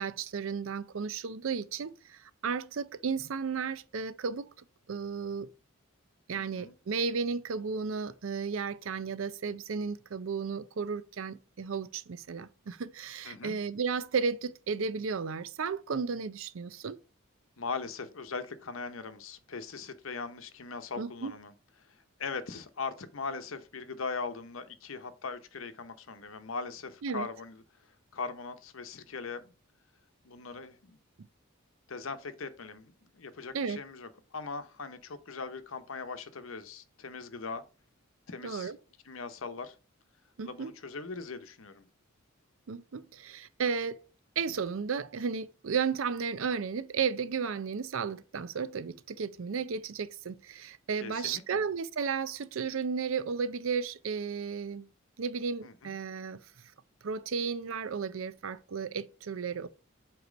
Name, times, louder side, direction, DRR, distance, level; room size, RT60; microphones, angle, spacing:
voice 1, 0.0-4.5 4.9-5.5 6.3-17.0 21.0-21.3 27.0-27.3 33.5-33.8 38.4-38.8 40.4-40.7 42.7-44.0 44.4-54.9 55.2-56.4 57.0-59.7, right 5 dB, 75° right, 0.5 m, -34 dB
voice 2, 6.3-6.7 13.2-13.6 17.6-21.5 22.2-27.6 28.1-29.5 30.2-31.0 31.9-37.6 38.3-38.7 39.0-39.8 40.4-41.9 51.0-51.6 55.6-55.9, left 4 dB, 75° left, 0.8 m, -40 dB
8.1 x 3.0 x 5.1 m
head